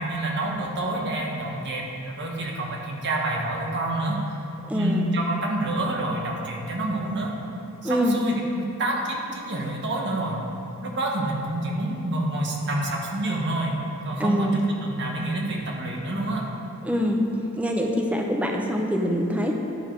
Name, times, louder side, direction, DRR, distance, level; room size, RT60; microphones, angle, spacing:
voice 1, 0.0-4.2 4.7-7.3 7.8-10.4 10.8-13.8 14.0-16.4, right 1 dB, 50° right, -1 dB, 1.2 m, -28 dB
voice 2, 4.6-5.0 7.8-8.2 14.2-14.5 16.8-17.2 17.6-19.5, equal, 5° right, 0 dB, 0.7 m, -24 dB
11.0 x 4.8 x 4.6 m, 2.8 s
head